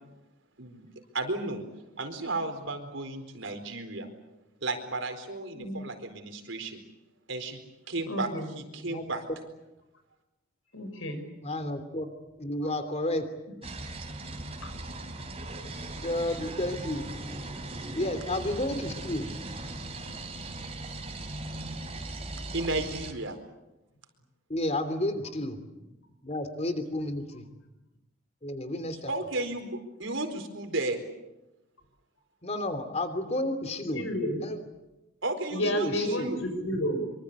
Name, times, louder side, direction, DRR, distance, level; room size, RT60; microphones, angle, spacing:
voice 1, 1.1-1.6 2.0-4.1 4.6-6.8 7.3-7.6 7.9-8.3 8.5-9.2 22.5-23.4 29.1-31.0 35.2-36.4, right 2 dB, 75° right, 6 dB, 4.4 m, -33 dB
voice 2, 5.5-5.9 8.1-8.5 10.7-11.2 14.6-14.7 33.9-34.5 35.5-37.1, equal, 85° left, 7 dB, 6.2 m, -31 dB
voice 3, 11.4-12.1 12.4-13.2 16.0-17.0 17.9-19.3 24.5-25.6 26.2-27.5 28.4-29.1 32.4-34.0 34.4-34.6 35.7-36.3, left 1 dB, 35° left, 10 dB, 3.1 m, -31 dB
sound 1, 13.6-23.1, right 2 dB, 30° right, 3.3 m, -38 dB
25.0 x 24.5 x 8.4 m, 0.98 s
head